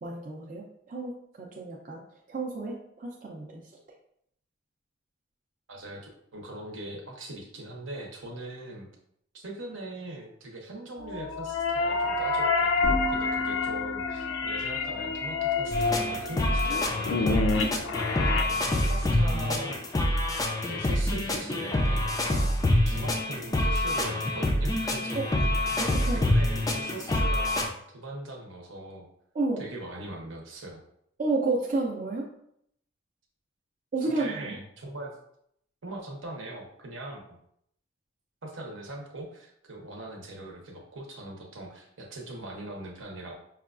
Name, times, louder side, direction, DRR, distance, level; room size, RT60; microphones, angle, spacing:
voice 1, 0.0-2.0 2.3-3.6 25.1-25.2 25.8-26.3 29.3-29.6 31.2-32.3 33.9-34.5, right 3 dB, 40° right, -2 dB, 0.5 m, -31 dB
voice 2, 5.7-8.9 9.3-20.0 20.6-29.1 29.6-30.8 34.0-35.1 35.8-37.4 38.4-43.3, right 2 dB, 75° right, 1 dB, 0.8 m, -41 dB
sound 1, 11.0-18.4, left 4 dB, 85° left, 0.4 m, -28 dB
sound 2, 12.8-16.7, left 1 dB, 25° right, 0.8 m, -36 dB
sound 3, 15.7-27.7, left 1 dB, 20° left, 0.3 m, -26 dB
5.5 x 2.3 x 2.4 m, 0.72 s
head